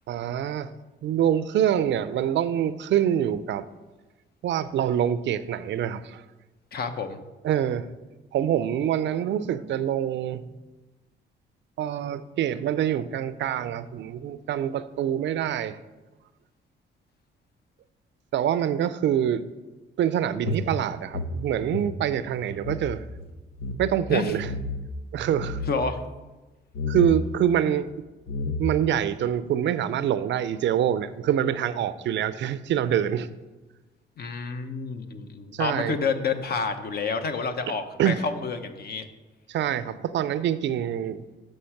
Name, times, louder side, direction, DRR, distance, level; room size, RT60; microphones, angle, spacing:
voice 1, 0.1-0.7 1.0-3.6 4.4-6.2 7.4-7.9 8.3-10.4 11.8-15.8 18.3-19.4 20.0-23.0 23.8-24.5 25.1-25.6 26.9-27.9 28.6-33.3 35.5-36.0 38.0-38.2 39.5-41.2, right 10 dB, 65° right, 15 dB, 0.5 m, -25 dB
voice 2, 6.7-7.2 24.1-24.4 25.7-26.0 34.2-39.1, left 5 dB, 50° left, 8 dB, 0.9 m, -29 dB
sound 1, 20.5-22.9 23.2-23.3 23.5-23.8 24.4-24.9 25.2-25.8 26.7-27.1 27.9-28.0 28.3-28.9, left 2 dB, 85° left, 0.9 m, -31 dB
6.5 x 6.4 x 5.7 m, 1.2 s
cardioid pair, 90°, 20 cm